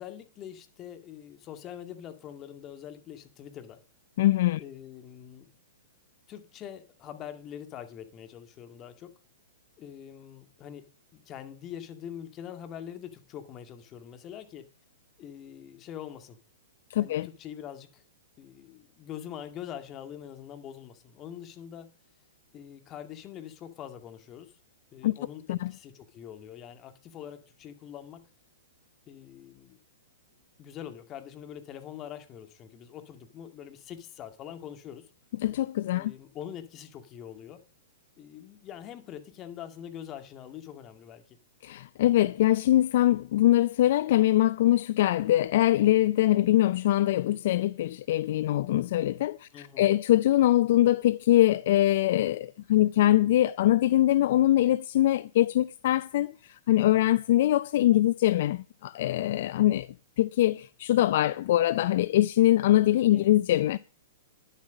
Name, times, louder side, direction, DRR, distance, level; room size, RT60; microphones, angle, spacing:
voice 1, 0.0-3.8 4.6-5.5 6.3-9.1 9.8-10.9 11.1-14.7 15.2-16.4 17.0-18.0 18.4-21.9 22.5-24.5 24.9-28.3 29.1-29.8 30.6-35.1 35.9-37.6 38.2-41.4 49.5-49.9 63.1-63.2, left 9 dB, 30° left, 2.1 m, -44 dB
voice 2, 4.2-4.6 16.9-17.3 25.0-25.1 25.5-25.7 35.4-36.1 41.6-59.9 60.2-63.8, left 14 dB, 55° left, 0.5 m, -23 dB
11.5 x 10.5 x 5.2 m
hypercardioid pair, 115°, 0 cm